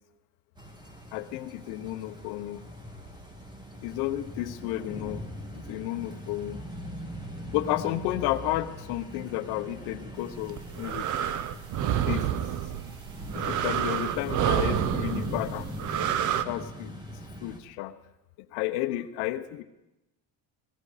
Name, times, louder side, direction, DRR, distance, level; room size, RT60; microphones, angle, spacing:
sound 1, 0.6-17.6, equal, 10° right, 1.9 m, -41 dB
voice 1, 1.1-2.6 3.8-5.2 5.5-6.6 7.5-11.1 12.1-12.3 13.3-15.7 16.4-16.9 17.4-17.9 18.5-19.6, left 14 dB, 85° left, 8 dB, 0.9 m, -32 dB
sound 2, 10.4-16.4, right 10 dB, 50° right, 0.8 m, -29 dB
17.5 x 14.5 x 5.0 m, 0.94 s
cardioid pair, 130°, 37 cm